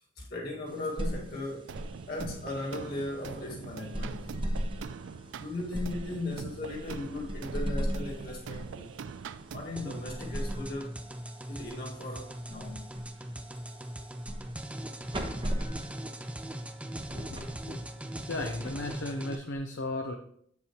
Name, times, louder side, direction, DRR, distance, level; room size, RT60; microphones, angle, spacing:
voice 1, 0.2-1.7 2.1-4.4 5.3-9.0 9.5-11.0 11.5-12.9, left 2 dB, 55° left, 1.8 m, -37 dB
sound 1, 0.7-19.5, equal, 25° right, 1.0 m, -39 dB
sound 2, 1.7-10.0, right 5 dB, 75° right, 0.4 m, -43 dB
sound 3, 9.8-19.4, right 1 dB, 5° right, 0.4 m, -40 dB
voice 2, 17.1-17.8 18.3-20.1, left 2 dB, 70° left, 0.7 m, -35 dB
8.1 x 7.0 x 2.9 m
head